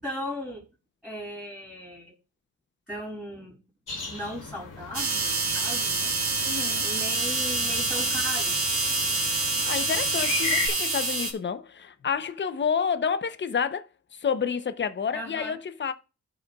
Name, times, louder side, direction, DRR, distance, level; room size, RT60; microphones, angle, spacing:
voice 1, 0.0-0.6 1.0-2.1 2.9-3.6 4.1-6.1 6.7-8.6 15.1-15.6, equal, ahead, 4.1 m, -37 dB
sound 1, 3.9-10.7, left 4 dB, 80° left, 2.8 m, -37 dB
sound 2, 4.9-11.3, right 3 dB, 45° right, 2.0 m, -26 dB
voice 2, 6.4-6.9 9.6-15.9, left 6 dB, 35° left, 0.8 m, -29 dB
16.0 x 5.5 x 2.3 m
cardioid pair, 80°, 31 cm